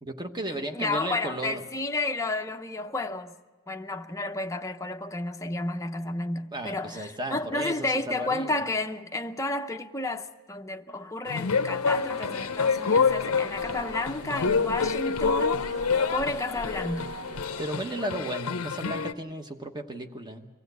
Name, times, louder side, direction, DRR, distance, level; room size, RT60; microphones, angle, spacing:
voice 1, 0.0-1.6 6.5-8.6 17.6-20.5, right 1 dB, 20° right, 1.1 m, -34 dB
voice 2, 0.7-3.4 3.7-15.8 16.1-17.1, left 2 dB, 15° left, 0.7 m, -31 dB
sound 1, 11.3-19.1, left 5 dB, 65° left, 0.6 m, -27 dB
sound 2, 11.9-17.7, right 1 dB, 70° right, 1.5 m, -41 dB
24.0 x 15.5 x 8.1 m
head